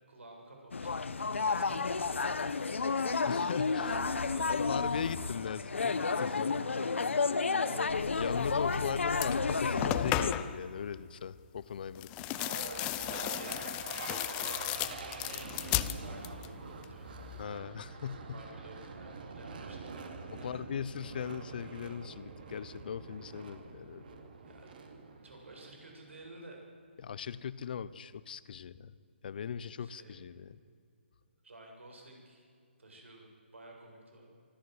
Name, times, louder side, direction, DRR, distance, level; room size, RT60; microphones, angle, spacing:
voice 1, 0.1-1.1 1.4-3.1 3.7-4.9 6.5-7.0 7.4-8.1 10.3-10.4 13.1-17.1 18.3-19.8 20.1-20.6 24.5-24.7 25.2-26.6 29.8-30.2 31.4-32.5 32.8-34.3, right 2 dB, 85° right, 1 dB, 7.5 m, -52 dB
sound 1, 0.7-10.3, left 4 dB, 85° left, 1.2 m, -31 dB
voice 2, 3.2-4.0 4.5-6.6 8.1-12.1 17.4-18.4 20.3-24.3 27.0-28.9 29.2-30.6, left 7 dB, 50° left, 17 dB, 0.8 m, -39 dB
sound 2, 8.7-8.8 9.1-10.6 12.0-16.5 16.8-17.4, left 15 dB, 15° left, 0.5 m, -35 dB
sound 3, 12.2-26.4, right 4 dB, 50° right, 2.5 m, -45 dB
24.5 x 14.0 x 7.9 m, 2.3 s
hypercardioid pair, 160°, 6 cm